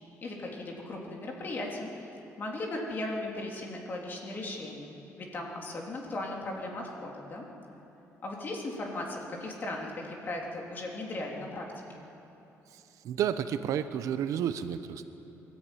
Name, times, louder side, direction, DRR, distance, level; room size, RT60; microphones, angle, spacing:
voice 1, 0.2-2.1 2.4-4.9 5.2-7.5 8.2-12.0, left 2 dB, 35° left, -1 dB, 3.3 m, -37 dB
voice 2, 13.0-15.0, right 9 dB, 70° right, 10 dB, 0.9 m, -31 dB
22.5 x 14.5 x 9.2 m, 2.9 s
cardioid pair, 155°, 6 cm